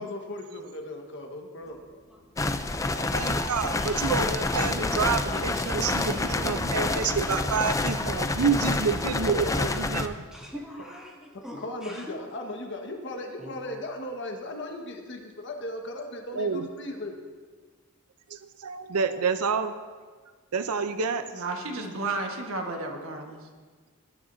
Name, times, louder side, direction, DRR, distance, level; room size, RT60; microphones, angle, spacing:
voice 1, 0.0-1.8 9.1-9.7 11.6-17.2, left 1 dB, 55° left, 2 dB, 1.5 m, -37 dB
sound 1, 1.6-9.9, equal, 30° left, 1.6 m, -44 dB
voice 2, 1.7-3.3 7.9-8.6 9.4-10.0 10.3-12.1 13.4-13.8, equal, 5° right, -5 dB, 2.6 m, -45 dB
sound 2, 2.4-10.1, left 2 dB, 15° left, 0.4 m, -28 dB
voice 3, 2.9-10.2 16.3-16.7 18.3-19.7 20.5-21.3, right 5 dB, 85° right, 10 dB, 0.6 m, -28 dB
voice 4, 5.2-7.1 21.3-23.4, right 3 dB, 65° right, 2 dB, 1.4 m, -34 dB
19.5 x 11.0 x 2.7 m, 1.5 s
head